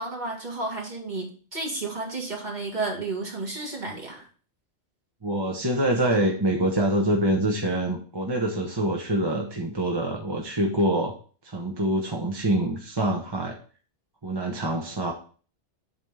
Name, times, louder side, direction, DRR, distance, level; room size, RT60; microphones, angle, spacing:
voice 1, 0.0-4.3, right 3 dB, 40° right, -1 dB, 2.0 m, -32 dB
voice 2, 5.2-11.1 11.4-13.6 14.2-15.1, right 1 dB, 25° right, 0 dB, 0.9 m, -25 dB
8.1 x 3.6 x 5.5 m, 0.41 s
omnidirectional pair, 1.2 m